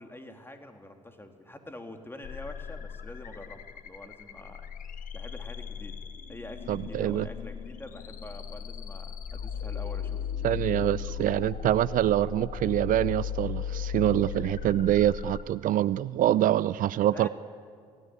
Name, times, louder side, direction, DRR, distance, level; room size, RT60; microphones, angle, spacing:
voice 1, 0.0-4.7 5.1-6.0 6.3-11.0 17.1-17.3, left 1 dB, 15° left, 5 dB, 3.3 m, -46 dB
sound 1, 2.2-15.4, left 8 dB, 55° left, 1.5 m, -37 dB
voice 2, 6.7-7.3 10.4-17.3, right 12 dB, 55° right, 19 dB, 0.6 m, -25 dB
26.0 x 17.0 x 9.5 m, 2.1 s
hypercardioid pair, 50°, 17 cm